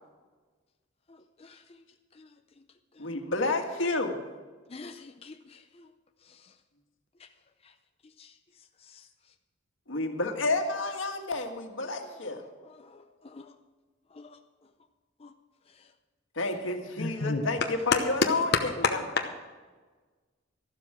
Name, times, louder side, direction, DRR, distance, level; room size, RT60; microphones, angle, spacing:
voice 1, 1.1-1.8 2.1-2.3 3.0-3.1 4.7-5.9 6.3-6.5 7.2-7.3 7.6-7.7 8.2-8.3 8.8-9.0 12.6-13.6 14.1-14.4 15.2-15.3 15.8-15.9 17.2-17.3, left 3 dB, 30° left, 6 dB, 0.6 m, -50 dB
voice 2, 3.0-4.2 9.9-12.4 16.3-19.0, left 2 dB, 90° left, 4 dB, 1.7 m, -30 dB
voice 3, 17.0-17.4 18.5-18.6 19.2-19.5, left 4 dB, 60° left, 3 dB, 0.9 m, -28 dB
13.0 x 12.0 x 4.9 m, 1.4 s
head